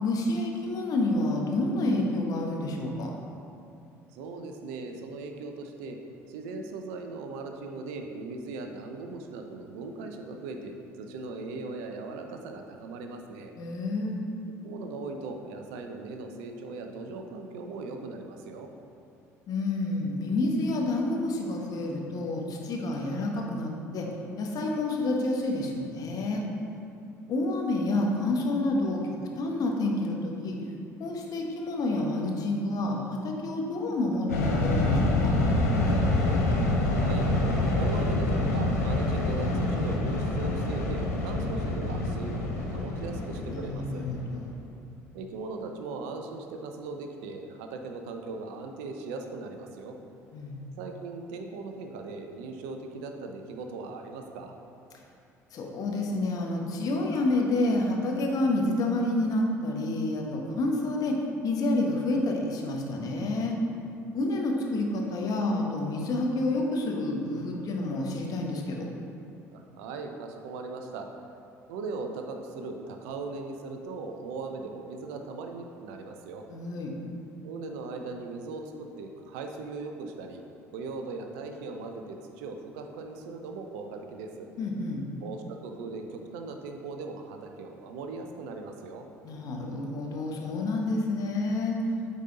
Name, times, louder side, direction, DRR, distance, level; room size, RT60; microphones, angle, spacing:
voice 1, 0.0-3.1 13.6-14.2 19.5-24.1 24.4-26.4 27.3-29.0 29.4-30.6 31.0-35.3 43.5-44.5 50.3-50.6 55.5-63.6 64.1-68.9 76.5-76.9 84.6-85.0 89.2-91.8, left 2 dB, 50° left, 0 dB, 1.1 m, -29 dB
voice 2, 4.1-6.0 6.3-13.5 14.6-18.7 36.7-37.3 37.7-44.0 45.1-50.0 50.8-54.5 69.5-71.1 71.7-76.5 77.4-80.4 80.7-84.5 85.2-89.1, right 3 dB, 70° right, 4 dB, 0.6 m, -39 dB
sound 1, 34.3-44.5, left 2 dB, 80° left, 0.8 m, -26 dB
8.2 x 4.1 x 3.8 m, 2.6 s
figure-of-eight pair, 60°, 8 cm